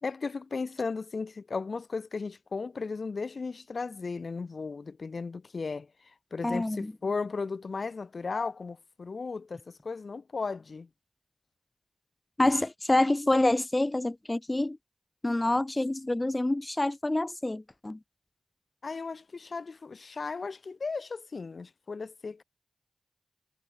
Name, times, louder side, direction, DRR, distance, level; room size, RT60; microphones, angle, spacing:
voice 1, 0.0-5.9 6.3-10.9 18.8-22.4, left 4 dB, 55° left, 1.8 m, -35 dB
voice 2, 6.4-6.9 12.4-14.8 15.2-18.0, left 1 dB, 25° left, 1.6 m, -27 dB
cardioid pair, 45°, 0 cm